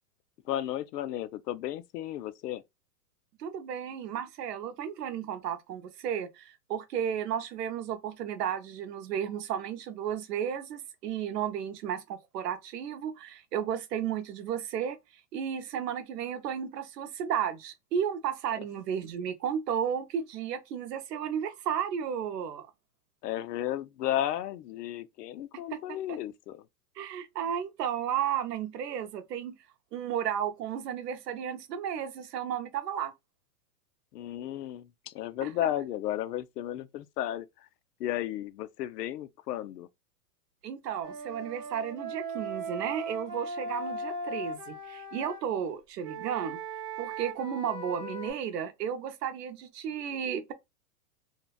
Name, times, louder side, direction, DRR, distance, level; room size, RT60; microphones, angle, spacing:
voice 1, 0.5-2.6 23.2-26.6 34.1-37.5 38.0-39.9, left 12 dB, 80° left, 0.5 m, -34 dB
voice 2, 3.4-15.0 15.3-22.7 25.7-26.2 27.0-29.5 29.9-33.1 35.4-35.5 40.6-46.6 47.0-50.5, right 8 dB, 80° right, 0.7 m, -33 dB
Wind instrument woodwind instrument, 41.0-45.4 46.0-48.3, right 2 dB, 35° right, 1.0 m, -38 dB
2.7 x 2.2 x 2.3 m
supercardioid pair, 180°, 47 cm